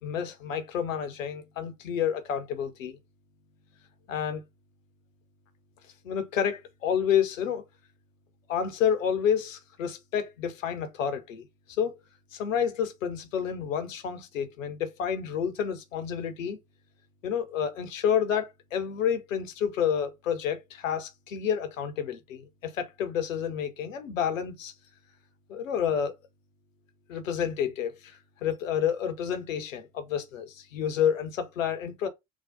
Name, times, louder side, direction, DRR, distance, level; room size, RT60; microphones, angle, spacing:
voice 1, 0.0-3.0 4.1-4.4 6.0-7.6 8.5-11.5 11.8-12.0 12.3-16.6 17.2-24.7 25.5-26.1 27.1-32.1, left 8 dB, 75° left, 0.8 m, -29 dB
5.9 x 2.2 x 2.7 m
figure-of-eight pair, 60°, 39 cm